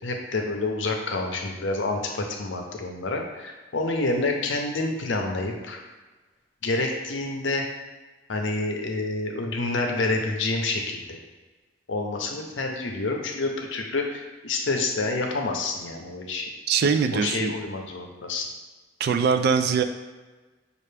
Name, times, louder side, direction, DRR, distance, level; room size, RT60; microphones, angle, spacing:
voice 1, 0.0-5.8 6.6-7.7 8.3-11.2 11.9-16.4 17.1-18.5, left 2 dB, 75° left, 2 dB, 0.6 m, -28 dB
voice 2, 16.7-17.5 19.0-19.8, right 6 dB, 55° right, 8 dB, 0.3 m, -22 dB
5.5 x 2.4 x 3.3 m, 1.3 s
head